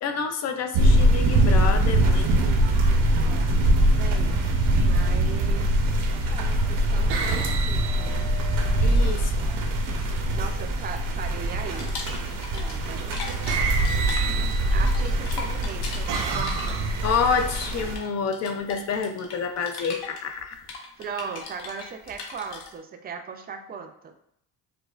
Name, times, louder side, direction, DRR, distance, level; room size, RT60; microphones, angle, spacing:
voice 1, 0.0-2.6 8.8-9.5 17.0-20.6, left 5 dB, 45° left, 7 dB, 0.4 m, -28 dB
sound 1, 0.7-18.0, right 1 dB, 55° right, 0.7 m, -23 dB
voice 2, 3.1-3.6 4.0-4.4 4.8-8.3 10.3-11.9 12.5-13.2 13.5-13.8 14.7-17.0 21.0-24.1, right 6 dB, 25° right, 6 dB, 0.3 m, -38 dB
sound 2, 4.8-5.1 6.0-6.5 7.1-9.1 11.3-11.9 12.9-13.1 13.5-15.1 15.7-17.4, right 5 dB, 85° right, 0.7 m, -32 dB
sound 3, 11.7-12.9 13.1-22.7, left 4 dB, 65° left, 0.9 m, -39 dB
5.0 x 2.1 x 2.4 m, 0.70 s
cardioid pair, 130°, 40 cm